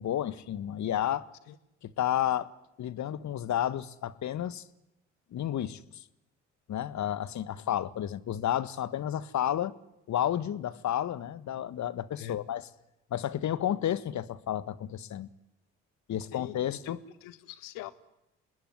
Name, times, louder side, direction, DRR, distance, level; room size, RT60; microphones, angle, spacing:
voice 1, 0.0-1.3 1.8-2.5 2.8-4.6 5.3-6.0 6.7-9.7 10.1-12.7 13.1-15.3 16.1-17.0, left 11 dB, 55° left, 1.6 m, -31 dB
voice 2, 16.1-17.9, left 12 dB, 70° left, 1.8 m, -44 dB
27.0 x 20.5 x 9.7 m
hypercardioid pair, 50°, 35 cm